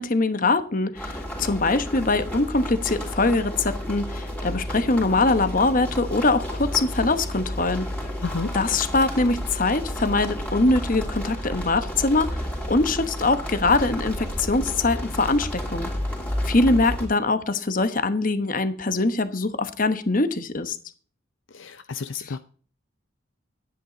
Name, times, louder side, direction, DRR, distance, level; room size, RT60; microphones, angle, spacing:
voice 1, 0.0-7.8 8.5-15.9 16.4-20.8, left 3 dB, 40° left, 11 dB, 1.0 m, -23 dB
sound 1, 1.0-17.1, equal, 5° left, 3.5 m, -31 dB
voice 2, 8.2-8.5 21.5-22.4, left 4 dB, 65° left, 11 dB, 0.6 m, -31 dB
11.0 x 9.8 x 4.0 m, 0.42 s
head